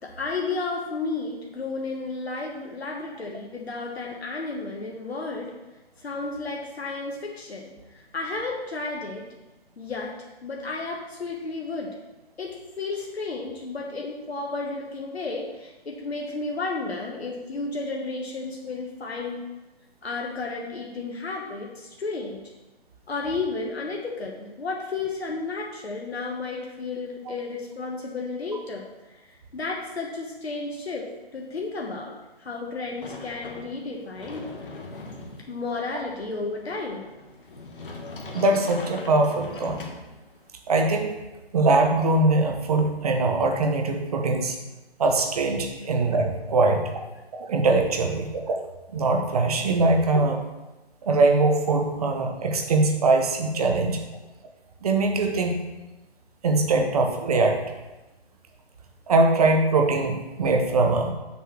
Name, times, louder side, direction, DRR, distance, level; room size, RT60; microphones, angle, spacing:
voice 1, 0.0-5.5 6.0-7.7 8.1-9.3 9.8-10.1 10.4-12.0 12.4-19.4 20.0-22.4 23.1-28.9 29.5-34.5 35.5-37.0 45.8-45.9, left 3 dB, 80° left, -1 dB, 1.3 m, -32 dB
Sliding door, 33.0-40.5, left 3 dB, 55° left, 1.3 m, -41 dB
voice 2, 38.3-39.8 40.7-41.1 41.5-44.6 45.0-47.0 47.3-48.6 48.9-50.4 51.0-54.0 54.8-55.6 56.4-57.6 59.1-61.1, right 3 dB, 35° right, 3 dB, 1.0 m, -22 dB
7.0 x 4.5 x 6.1 m, 1.1 s
figure-of-eight pair, 150°, 31 cm